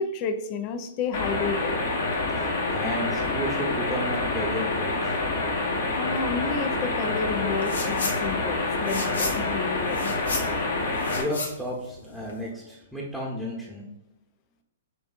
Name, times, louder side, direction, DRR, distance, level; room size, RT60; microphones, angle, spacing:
voice 1, 0.0-1.8 6.0-10.1, left 5 dB, 35° left, 8 dB, 0.5 m, -31 dB
sound 1, 1.1-11.2, left 2 dB, 60° left, 1.3 m, -27 dB
voice 2, 2.4-5.2 11.2-13.8, equal, ahead, -5 dB, 0.9 m, -33 dB
sound 2, 7.6-8.2 8.5-12.5, left 3 dB, 80° left, 0.9 m, -33 dB
6.7 x 2.6 x 2.5 m, 0.90 s
figure-of-eight pair, 115°, 0 cm